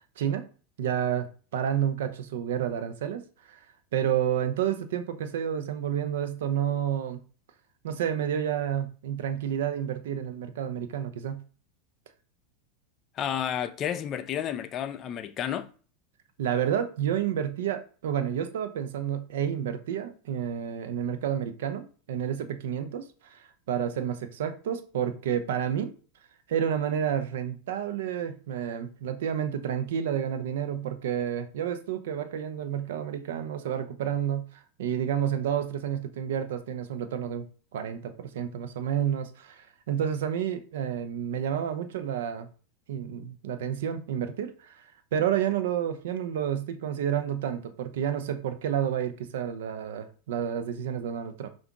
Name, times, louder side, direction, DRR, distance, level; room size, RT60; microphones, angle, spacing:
voice 1, 0.8-1.3 1.5-3.2 3.5-3.6 3.9-7.2 7.8-11.4 16.4-25.9 26.5-34.4 34.8-37.5 37.7-42.5 42.9-44.8 45.1-51.5, right 9 dB, 70° right, 0.7 m, -30 dB
voice 2, 13.2-15.7, left 9 dB, 40° left, 0.5 m, -31 dB
5.7 x 2.6 x 3.6 m
hypercardioid pair, 95°, 0 cm